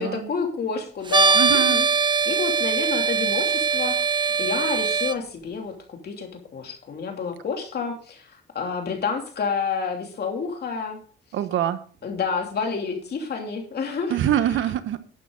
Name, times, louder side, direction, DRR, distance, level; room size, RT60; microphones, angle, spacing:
voice 1, 0.0-1.9 2.2-11.0 12.0-14.2, left 5 dB, 55° left, 3 dB, 3.1 m, -29 dB
sound 1, 1.1-5.2, right 5 dB, 25° right, 0.7 m, -21 dB
voice 2, 1.3-1.8 11.3-11.8 14.1-15.0, right 11 dB, 75° right, 10 dB, 1.3 m, -24 dB
12.0 x 8.9 x 4.0 m, 0.43 s
cardioid pair, 90°, 20 cm